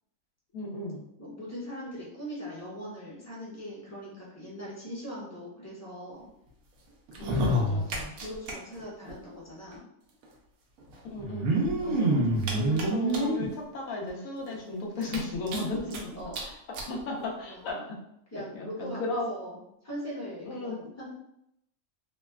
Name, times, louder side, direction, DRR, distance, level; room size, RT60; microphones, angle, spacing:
voice 1, 0.5-1.0 7.2-8.1 11.1-15.8 16.4-16.5 16.9-18.0 18.3-19.3 20.4-20.8, left 2 dB, 80° left, -1 dB, 1.1 m, -35 dB
voice 2, 1.2-6.2 7.1-7.6 8.2-9.8 15.6-16.4 17.5-17.8 18.3-19.0 19.3-19.6 19.8-21.1, equal, 15° left, -7 dB, 0.7 m, -40 dB
sound 1, 7.1-8.5 8.8-8.9 9.1-9.2 10.2-10.3 11.2-13.5 14.1-14.2 14.5-14.6 15.0-16.0 16.3-16.4 16.7-16.9 17.7-17.8, right 1 dB, 90° right, 1.1 m, -27 dB
3.2 x 2.2 x 2.2 m, 0.78 s
omnidirectional pair, 1.4 m